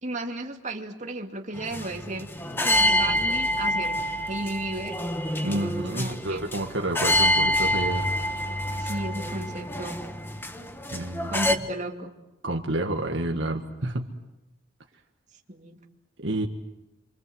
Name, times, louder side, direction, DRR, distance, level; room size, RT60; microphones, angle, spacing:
voice 1, 0.0-2.3 2.6-4.0 4.2-5.0 5.4-6.4 8.8-10.0 11.3-12.1 15.5-15.8, right 2 dB, 40° right, 2 dB, 2.6 m, -34 dB
sound 1, 1.5-11.6, equal, 10° left, 1.3 m, -27 dB
voice 2, 5.4-8.0 10.9-11.5 12.4-14.1 16.2-16.5, right 1 dB, 65° right, 3 dB, 1.7 m, -29 dB
28.5 x 25.0 x 7.9 m, 1.0 s
head